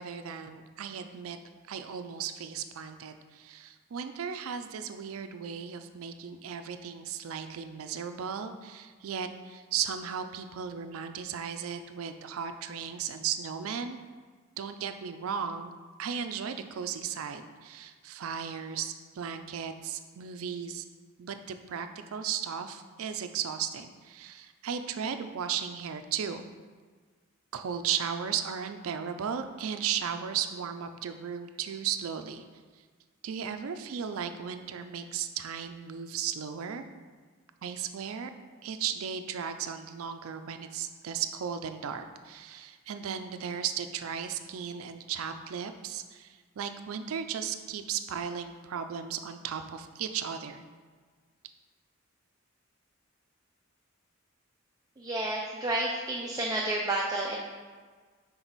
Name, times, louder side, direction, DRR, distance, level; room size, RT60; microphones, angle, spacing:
voice 1, 0.0-1.4 1.7-14.0 14.6-15.7 16.0-20.8 21.2-26.5 27.5-32.4 33.2-36.9 37.6-38.3 38.6-50.6, right 8 dB, 80° right, 8 dB, 0.4 m, -35 dB
voice 2, 55.0-57.5, right 2 dB, 15° right, -2 dB, 0.4 m, -31 dB
6.0 x 3.9 x 4.0 m, 1.5 s
head